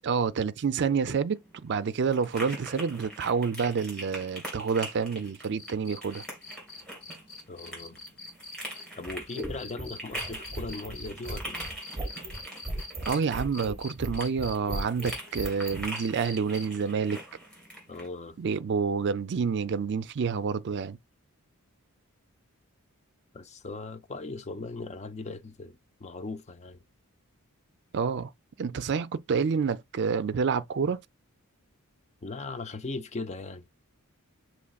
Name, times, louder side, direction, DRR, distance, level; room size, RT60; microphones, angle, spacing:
voice 1, 0.0-6.2 13.1-17.2 18.4-21.0 27.9-28.3 28.6-31.0, right 5 dB, 50° right, 0.4 m, -28 dB
sound 1, 0.9-18.1, right 1 dB, 5° left, 2.7 m, -43 dB
sound 2, 5.6-13.2 13.5-16.9 18.5-18.6, left 3 dB, 50° left, 1.7 m, -44 dB
voice 2, 7.5-8.0 9.0-11.7 17.9-18.4 23.3-26.8 32.2-33.6, left 3 dB, 30° left, 0.5 m, -39 dB
sound 3, 9.0-15.9, right 1 dB, 15° right, 1.2 m, -37 dB
6.2 x 3.0 x 2.3 m
head